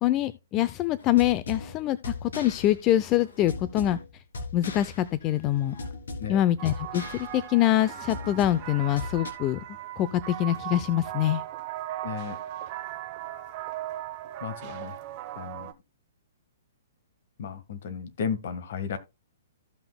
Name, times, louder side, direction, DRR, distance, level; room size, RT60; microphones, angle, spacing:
voice 1, 0.0-4.0 4.5-5.8 6.3-9.6 10.0-11.4, left 13 dB, 30° left, 0.5 m, -25 dB
sound 1, 1.0-9.3, left 3 dB, 80° left, 2.5 m, -39 dB
sound 2, 6.6-15.7, right 13 dB, 35° right, 1.0 m, -38 dB
voice 2, 12.0-12.4 14.4-15.0 15.3-15.7 17.4-19.0, left 7 dB, 60° left, 1.5 m, -34 dB
15.5 x 5.9 x 2.2 m
hypercardioid pair, 140°, 0 cm